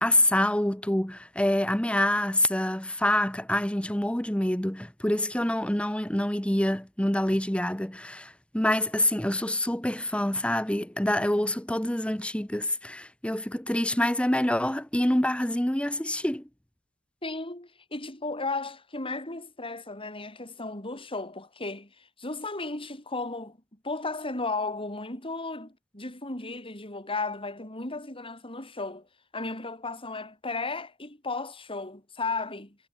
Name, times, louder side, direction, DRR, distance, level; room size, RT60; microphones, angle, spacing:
voice 1, 0.0-16.5, left 1 dB, 5° left, 1.0 m, -26 dB
voice 2, 17.2-23.6 23.8-29.1 29.3-32.8, left 3 dB, 25° left, 7.5 m, -35 dB
head